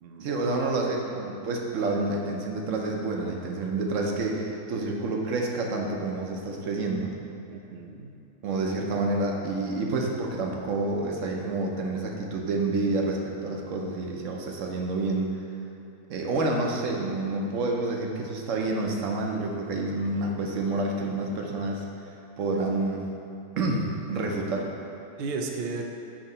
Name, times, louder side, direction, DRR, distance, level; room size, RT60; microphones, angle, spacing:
voice 1, 0.2-7.2 8.4-15.3 16.1-21.8 22.4-23.0 23.6-24.7, right 2 dB, 65° right, 0 dB, 1.0 m, -28 dB
voice 2, 7.5-8.1 24.6-24.7 25.2-25.8, right 4 dB, 80° right, 2 dB, 0.5 m, -35 dB
7.3 x 2.9 x 5.4 m, 2.6 s
omnidirectional pair, 1.6 m